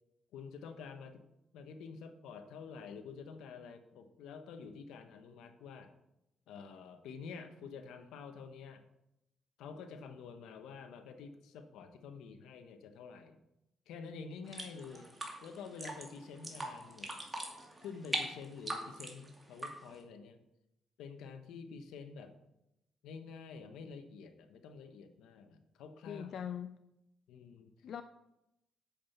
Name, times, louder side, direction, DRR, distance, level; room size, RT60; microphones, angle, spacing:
voice 1, 0.3-1.2 1.5-5.9 6.5-8.8 9.6-13.4 13.9-15.1 15.4-17.2 17.8-20.4 21.0-22.3 23.0-26.3 27.3-27.7, left 5 dB, 85° left, 8 dB, 1.1 m, -48 dB
sound 1, 14.4-20.0, right 2 dB, 20° right, 2.4 m, -42 dB
voice 2, 26.1-26.8 27.8-28.0, left 9 dB, 65° left, 9 dB, 0.5 m, -41 dB
8.6 x 7.6 x 5.7 m, 0.86 s
cardioid pair, 90°, 0 cm